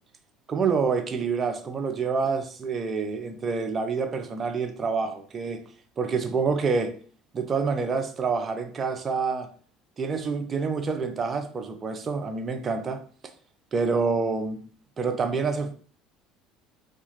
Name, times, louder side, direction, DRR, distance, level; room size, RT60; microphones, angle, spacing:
voice 1, 0.5-5.6 6.0-6.9 7.3-9.5 10.0-13.0 13.7-14.6 15.0-15.7, right 5 dB, 35° right, 0.6 m, -27 dB
2.8 x 2.3 x 2.9 m
supercardioid pair, 85°, 0 cm